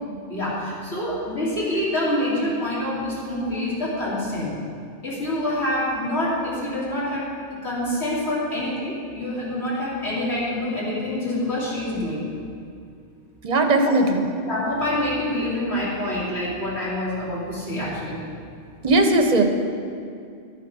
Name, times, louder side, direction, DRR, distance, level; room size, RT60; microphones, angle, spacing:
voice 1, 0.3-4.5 5.0-12.2 13.8-13.9 14.4-18.2, left 1 dB, 60° left, -7 dB, 3.2 m, -26 dB
voice 2, 13.4-14.2 18.8-19.4, right 2 dB, 35° right, 4 dB, 1.0 m, -18 dB
12.0 x 6.6 x 6.2 m, 2.4 s
omnidirectional pair, 1.2 m